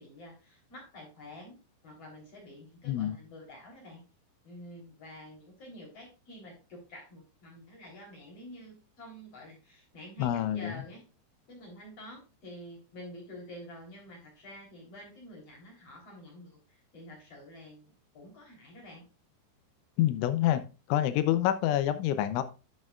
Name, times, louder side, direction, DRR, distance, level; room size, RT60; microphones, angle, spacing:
voice 1, 0.0-1.6 1.8-4.0 4.4-11.0 11.5-19.0, left 1 dB, 35° left, 0 dB, 4.0 m, -48 dB
voice 2, 10.2-10.7 20.0-20.6 20.9-22.4, left 12 dB, 85° left, 12 dB, 3.1 m, -27 dB
12.5 x 6.6 x 2.3 m, 0.31 s
omnidirectional pair, 5.4 m